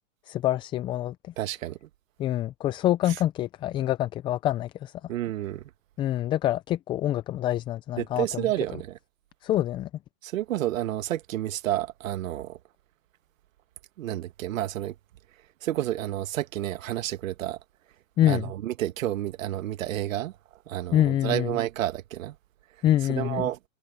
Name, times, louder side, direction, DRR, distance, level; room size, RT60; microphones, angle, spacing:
voice 1, 0.3-1.3 2.2-4.9 6.0-8.5 9.4-9.9 18.2-18.5 20.9-21.5 22.8-23.5, left 13 dB, 15° left, 0.4 m, -26 dB
voice 2, 1.4-1.9 5.1-5.7 8.0-9.0 10.2-12.6 14.0-14.9 15.6-17.6 18.3-20.3 20.7-22.4 23.1-23.6, right 13 dB, 65° right, 1.9 m, -30 dB
hypercardioid pair, 120°, 43 cm